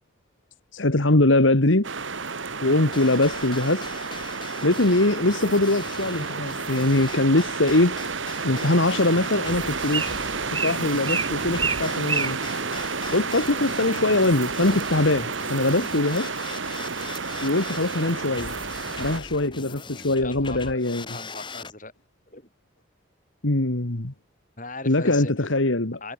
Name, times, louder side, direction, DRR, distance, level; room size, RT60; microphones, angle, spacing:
voice 1, 0.7-1.9 2.6-3.9 4.6-8.0 8.4-10.1 10.5-12.4 13.1-16.3 17.4-18.5 19.0-21.0 23.4-24.1 24.9-26.0, left 2 dB, 80° left, 2.1 m, -22 dB
sound 1, 1.8-19.2, right 4 dB, 75° right, 2.2 m, -31 dB
sound 2, 2.9-21.7, left 4 dB, 25° left, 6.2 m, -41 dB
Bird, 8.4-13.5, right 5 dB, 25° right, 1.8 m, -32 dB
voice 2, 20.2-21.9 22.3-22.5 24.6-25.3 26.0-26.1, left 3 dB, 40° left, 5.7 m, -39 dB
head